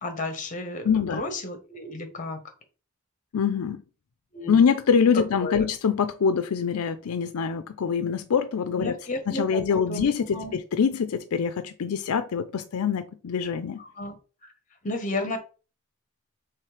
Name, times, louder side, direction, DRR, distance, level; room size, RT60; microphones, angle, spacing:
voice 1, 0.0-2.4 4.3-4.6 5.4-5.7 8.8-10.0 10.3-10.5 13.8-14.1 14.8-15.4, left 2 dB, 35° left, 1.0 m, -32 dB
voice 2, 0.8-1.2 3.3-3.8 4.5-8.9 9.3-13.8, left 6 dB, 80° left, 0.4 m, -24 dB
3.3 x 3.2 x 4.6 m
head